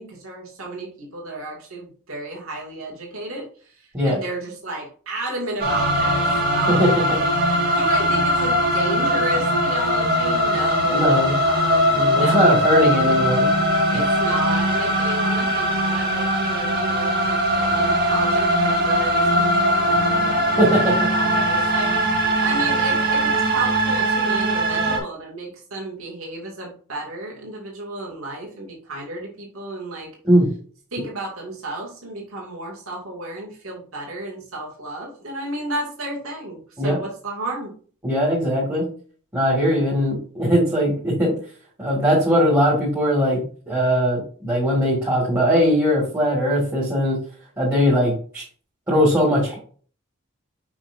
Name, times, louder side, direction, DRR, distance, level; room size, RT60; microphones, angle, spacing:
voice 1, 0.0-6.9 7.7-12.9 13.9-30.1 30.9-37.7, right 2 dB, 75° right, -2 dB, 2.4 m, -33 dB
sound 1, 5.6-25.0, equal, 45° right, 2.2 m, -20 dB
voice 2, 10.9-11.3 11.9-13.5 13.9-14.0 20.6-21.1 30.2-30.5 36.8-37.0 38.0-38.9 39.3-41.3 41.8-47.2 47.6-48.4 48.9-49.6, equal, 15° right, -5 dB, 2.1 m, -20 dB
6.4 x 5.9 x 2.7 m, 0.44 s
head